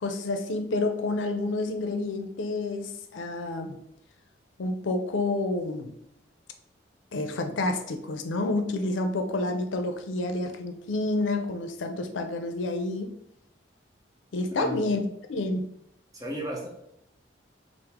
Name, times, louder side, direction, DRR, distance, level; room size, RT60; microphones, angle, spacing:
voice 1, 0.0-3.8 4.6-5.9 7.1-13.1 14.3-15.0 15.3-15.6, left 2 dB, 85° left, 7 dB, 0.5 m, -29 dB
voice 2, 16.1-16.7, right 1 dB, 20° right, -2 dB, 0.8 m, -34 dB
4.8 x 2.0 x 3.4 m, 0.75 s
head